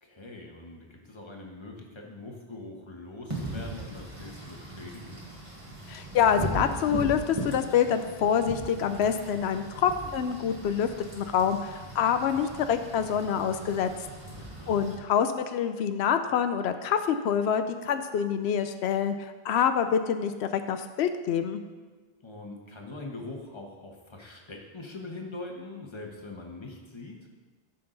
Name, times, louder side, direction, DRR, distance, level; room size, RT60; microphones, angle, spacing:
voice 1, 0.0-5.2 14.3-14.8 22.2-27.3, left 2 dB, 25° left, 1 dB, 1.3 m, -43 dB
Wind / Rain, 3.3-14.9, right 1 dB, 30° right, 1.6 m, -39 dB
voice 2, 5.9-10.9 11.1-13.9 14.7-21.6, left 8 dB, 90° left, 9 dB, 0.8 m, -26 dB
14.0 x 5.8 x 3.9 m, 1.4 s
omnidirectional pair, 1.1 m